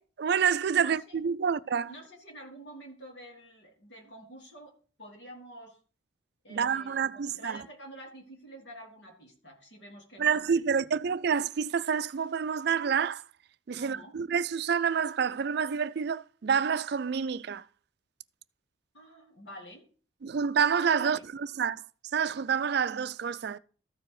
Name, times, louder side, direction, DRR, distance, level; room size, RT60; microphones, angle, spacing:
voice 1, 0.0-1.9 6.5-7.6 10.2-13.2 13.7-17.6 20.2-21.8 22.1-23.6, right 7 dB, 55° right, 0.4 m, -28 dB
voice 2, 0.8-1.2 1.9-5.8 6.4-10.9 13.8-14.2 18.9-19.9 21.0-21.2, equal, 65° left, 3.1 m, -48 dB
14.0 x 4.8 x 4.8 m
head